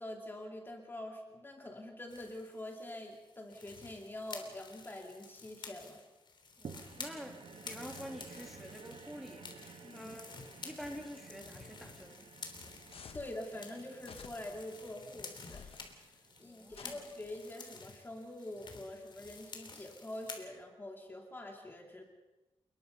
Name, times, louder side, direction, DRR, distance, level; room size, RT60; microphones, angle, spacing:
voice 1, 0.0-6.0 9.8-10.1 12.6-12.8 13.1-16.1 16.4-22.0, left 1 dB, 20° left, 2 dB, 2.4 m, -45 dB
sound 1, 2.1-20.5, left 4 dB, 50° left, 3.5 m, -51 dB
voice 2, 6.6-10.3 10.6-12.3 16.4-17.0, equal, ahead, 2 dB, 2.9 m, -48 dB
sound 2, 6.6-17.1 17.7-17.8, right 6 dB, 70° right, 1.6 m, -54 dB
sound 3, 12.9-13.4 14.0-14.7 15.4-16.0 16.7-17.5, left 6 dB, 70° left, 1.4 m, -52 dB
29.0 x 21.0 x 5.5 m, 1.1 s
wide cardioid pair, 150°, 10 cm